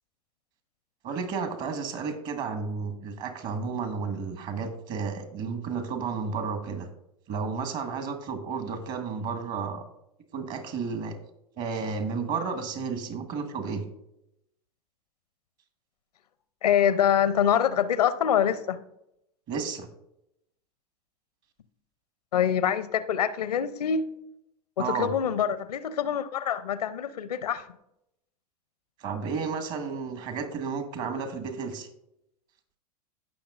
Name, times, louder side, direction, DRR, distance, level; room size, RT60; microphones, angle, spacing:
voice 1, 1.0-6.9 7.3-9.8 10.3-11.1 11.6-13.9 19.5-19.9 24.8-25.1 29.0-31.9, right 5 dB, 45° right, 7 dB, 1.6 m, -32 dB
voice 2, 16.6-18.8 22.3-24.1 24.8-27.7, left 9 dB, 80° left, 15 dB, 0.6 m, -25 dB
16.5 x 5.9 x 2.5 m, 0.82 s
hypercardioid pair, 95°, 20 cm